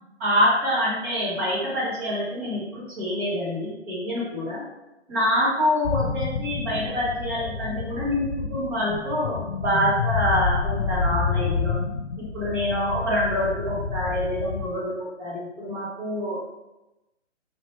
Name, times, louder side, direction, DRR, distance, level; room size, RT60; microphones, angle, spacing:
voice 1, 0.2-4.6 5.1-11.7 12.2-14.9 15.2-16.4, equal, 15° right, -6 dB, 0.9 m, -26 dB
sound 1, 5.8-14.7, left 5 dB, 55° left, 0.5 m, -29 dB
3.2 x 2.8 x 4.3 m, 1.0 s
figure-of-eight pair, 150°, 35 cm